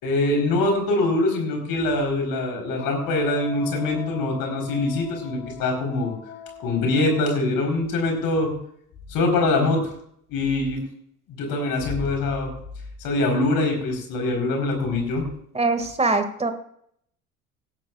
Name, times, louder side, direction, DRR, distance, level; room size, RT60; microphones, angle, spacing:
voice 1, 0.0-6.1 6.6-8.5 9.1-9.9 10.3-10.8 11.3-12.5 13.0-15.3, left 2 dB, 55° left, 2 dB, 4.3 m, -23 dB
Wind instrument woodwind instrument, 2.7-7.5, left 7 dB, 75° left, 3.0 m, -40 dB
voice 2, 15.5-16.5, right 3 dB, 15° right, 8 dB, 2.1 m, -22 dB
17.0 x 13.5 x 2.5 m, 0.67 s
figure-of-eight pair, 60°, 41 cm